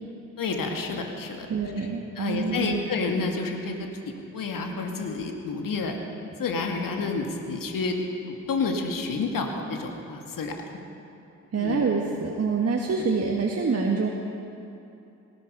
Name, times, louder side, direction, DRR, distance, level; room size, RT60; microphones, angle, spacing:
voice 1, 0.4-1.5 1.8-1.9 2.2-5.9 6.4-8.0 8.3-10.5 11.6-11.8 12.9-13.0, left 4 dB, 50° left, 3 dB, 2.3 m, -29 dB
voice 2, 1.5-2.8 11.5-14.1, right 4 dB, 35° right, 0 dB, 1.7 m, -26 dB
18.5 x 14.0 x 5.3 m, 2.8 s
hypercardioid pair, 45°, 41 cm